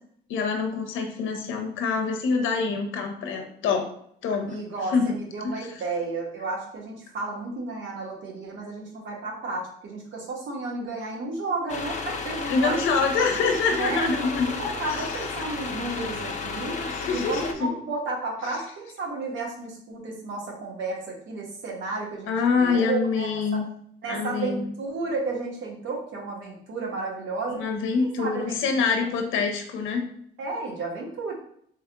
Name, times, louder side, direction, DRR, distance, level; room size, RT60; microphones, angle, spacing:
voice 1, 0.3-3.8 4.2-4.6 4.9-5.1 5.4-5.7 12.5-14.5 14.8-15.0 16.7-17.7 22.3-23.6 24.1-24.6 27.5-30.0, left 5 dB, 80° left, 4 dB, 0.6 m, -25 dB
voice 2, 4.5-12.9 13.7-14.1 14.6-16.8 17.1-23.6 24.0-27.6 28.0-28.6 30.4-31.3, right 3 dB, 75° right, -1 dB, 1.1 m, -32 dB
sound 1, 11.7-17.5, left 4 dB, 35° left, 0.6 m, -33 dB
3.6 x 3.2 x 2.2 m, 0.66 s
cardioid pair, 90°, 20 cm